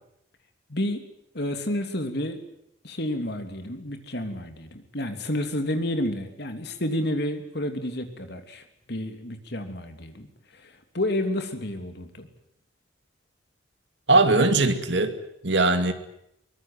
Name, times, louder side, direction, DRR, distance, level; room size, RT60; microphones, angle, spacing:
voice 1, 0.7-1.0 1.3-2.4 2.8-8.6 8.9-12.3, left 1 dB, 55° left, 6 dB, 3.1 m, -30 dB
voice 2, 14.1-15.2 15.4-15.9, right 2 dB, 60° right, 8 dB, 2.5 m, -20 dB
23.5 x 19.5 x 9.3 m, 0.78 s
head